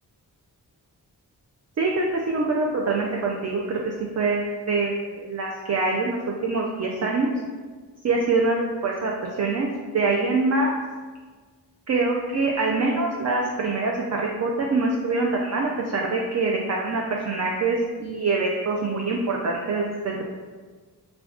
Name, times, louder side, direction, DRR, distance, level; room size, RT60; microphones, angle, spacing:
voice 1, 1.8-6.2 6.4-7.3 8.0-9.7 9.9-10.7 11.9-20.2, right 3 dB, 40° right, -1 dB, 0.4 m, -24 dB
2.3 x 2.2 x 3.5 m, 1.4 s
cardioid pair, 40°, 41 cm